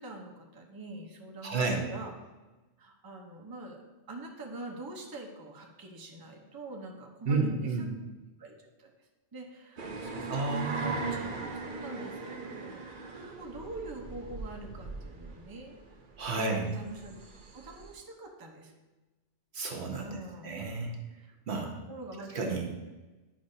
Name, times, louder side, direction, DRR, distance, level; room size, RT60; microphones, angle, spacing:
voice 1, 0.0-2.1 2.8-7.9 8.4-12.8 13.1-15.7 16.3-17.2 17.5-18.8 20.0-20.5 21.2-21.3 21.9-22.4, right 2 dB, 20° right, 0 dB, 0.8 m, -45 dB
voice 2, 1.4-1.8 7.3-7.9 10.3-11.0 16.2-16.7 19.5-20.2 20.4-20.9 21.5-21.7 22.3-22.7, right 3 dB, 65° right, 1 dB, 1.2 m, -31 dB
sound 1, 9.8-17.9, right 4 dB, 50° right, 0.8 m, -39 dB
10.0 x 5.3 x 2.7 m, 1.2 s
omnidirectional pair, 1.2 m